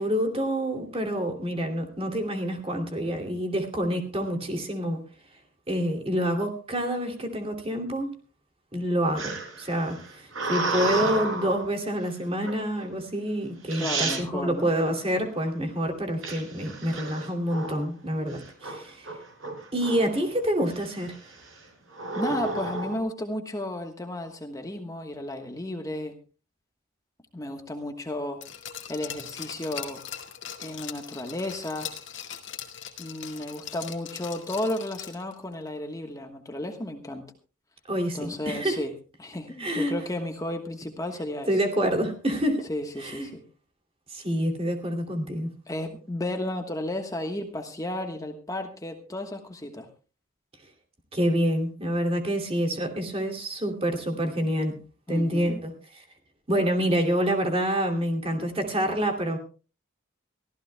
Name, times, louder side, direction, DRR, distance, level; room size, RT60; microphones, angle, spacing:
voice 1, 0.0-5.0 5.7-8.1 8.7-19.1 19.7-21.2 37.9-38.8 39.6-39.9 41.5-42.7 43.0-43.3 44.1-45.5 51.1-54.7 55.1-56.0 56.5-59.4, equal, 30° right, 2 dB, 2.6 m, -27 dB
sound 1, 9.2-11.7 12.4-12.8 13.4-13.5 13.7-14.2 16.2-17.9 18.3-18.7 19.0-20.2 20.7-21.1 21.9-23.0, right 3 dB, 80° right, 5.7 m, -31 dB
voice 2, 13.8-14.7 22.1-26.1 27.3-28.4 28.9-30.0 30.6-31.9 33.0-37.2 38.1-38.9 39.2-41.6 42.7-43.4 45.7-49.9 55.1-55.6, left 1 dB, 15° left, 4 dB, 1.3 m, -33 dB
Glass, 28.4-35.3 35.7-35.8, left 9 dB, 65° left, 2.0 m, -40 dB
24.0 x 15.5 x 2.2 m, 0.35 s
head